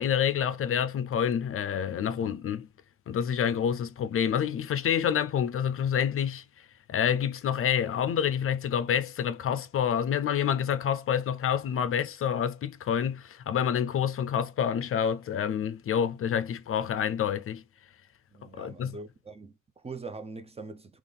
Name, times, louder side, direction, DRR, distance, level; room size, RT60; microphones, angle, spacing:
voice 1, 0.0-2.7 3.1-6.4 6.9-17.6 18.6-19.0, left 8 dB, 50° left, 0.4 m, -28 dB
voice 2, 18.3-21.0, right 3 dB, 20° right, 0.5 m, -42 dB
3.8 x 2.5 x 3.3 m
cardioid pair, 90°, 30 cm